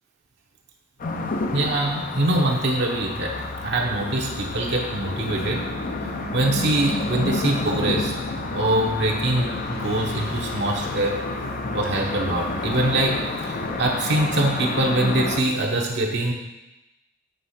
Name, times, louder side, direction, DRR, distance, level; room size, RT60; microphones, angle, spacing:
sound 1, 1.0-15.4, left 2 dB, 45° left, 0.6 m, -30 dB
voice 1, 1.5-5.7 6.3-8.1 8.5-11.2 11.7-16.3, right 1 dB, 60° right, -1 dB, 1.0 m, -24 dB
sound 2, 2.8-14.6, left 2 dB, 80° left, 2.2 m, -39 dB
8.0 x 3.7 x 5.6 m, 0.98 s
head